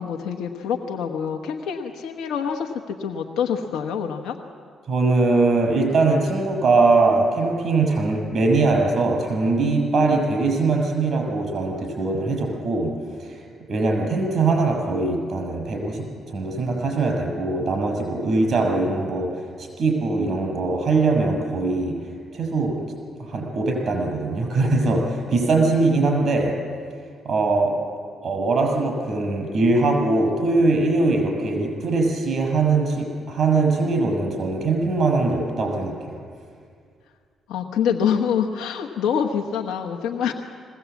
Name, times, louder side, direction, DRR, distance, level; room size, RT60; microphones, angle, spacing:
voice 1, 0.0-4.4 37.5-40.3, left 7 dB, 80° left, 2 dB, 1.2 m, -26 dB
voice 2, 4.9-12.9 13.2-13.4 13.7-19.3 19.6-21.9 22.3-22.8 23.2-26.5 27.2-27.7 28.2-36.2, right 3 dB, 50° right, 1 dB, 6.6 m, -21 dB
21.0 x 17.0 x 8.3 m, 2.1 s
cardioid pair, 90°, 0 cm